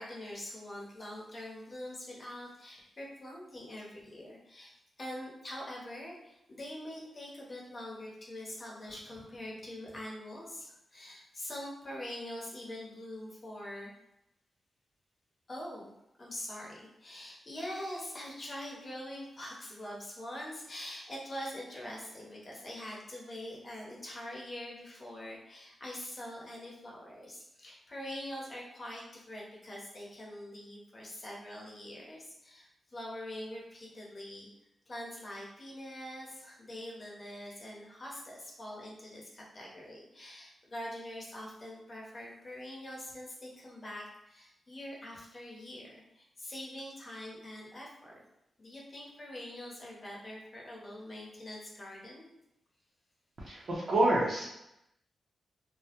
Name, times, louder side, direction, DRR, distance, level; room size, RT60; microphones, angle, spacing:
voice 1, 0.0-4.7 5.0-13.9 15.5-15.9 16.2-34.5 34.9-48.2 48.6-52.3, left 1 dB, 40° left, -3 dB, 0.7 m, -44 dB
voice 2, 53.4-54.5, right 1 dB, 65° right, -7 dB, 0.5 m, -28 dB
2.2 x 2.0 x 2.8 m, 0.85 s
cardioid pair, 80°, 0 cm